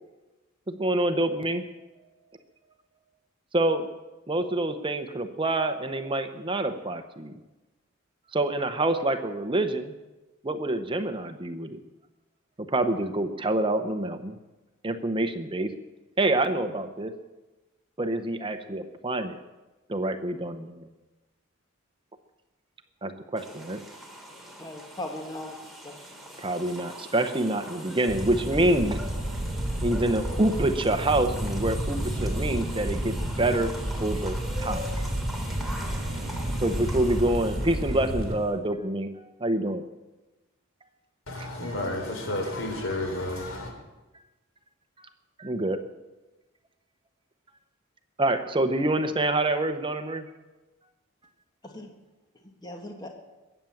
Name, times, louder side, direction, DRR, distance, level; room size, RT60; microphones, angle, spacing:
voice 1, 0.7-1.7 3.5-3.9 4.3-7.3 8.3-9.9 10.4-11.8 12.7-14.3 14.8-15.7 16.2-17.1 18.0-19.4 19.9-20.9 23.0-23.8 26.4-29.0 29.8-35.1 36.6-39.1 39.4-39.8 41.3-41.5 45.4-45.8 48.2-50.3, right 1 dB, 25° right, 8 dB, 0.9 m, -27 dB
sound 1, 23.4-38.5, equal, ahead, 3.1 m, -42 dB
voice 2, 24.6-26.0 51.6-51.9 52.3-53.1, left 1 dB, 20° left, 3 dB, 1.5 m, -39 dB
Fire, 28.1-38.4, right 1 dB, 45° right, 3.1 m, -31 dB
voice 3, 41.3-43.7, left 1 dB, 70° left, 3 dB, 3.9 m, -31 dB
22.0 x 9.1 x 7.2 m, 1.1 s
head